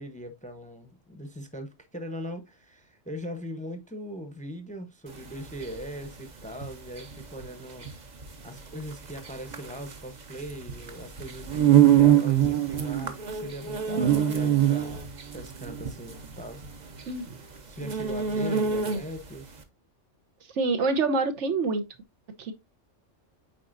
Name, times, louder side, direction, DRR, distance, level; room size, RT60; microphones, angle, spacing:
voice 1, 0.0-7.9 8.4-15.0 15.3-16.6 17.7-19.5, equal, 5° left, 0.7 m, -40 dB
sound 1, 5.1-19.3, right 10 dB, 40° right, 0.9 m, -25 dB
voice 2, 20.6-21.8 22.4-22.5, right 3 dB, 75° right, 1.2 m, -26 dB
9.1 x 4.1 x 2.6 m
omnidirectional pair, 1.3 m